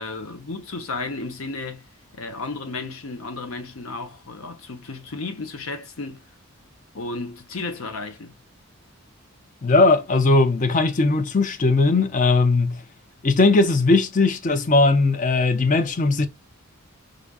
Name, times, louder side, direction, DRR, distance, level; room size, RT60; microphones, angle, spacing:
voice 1, 0.0-1.9 2.1-6.2 6.9-8.4, left 3 dB, 75° left, 0.9 m, -33 dB
voice 2, 9.6-12.8 13.2-16.3, left 3 dB, 35° left, 0.5 m, -18 dB
4.9 x 2.5 x 2.3 m
head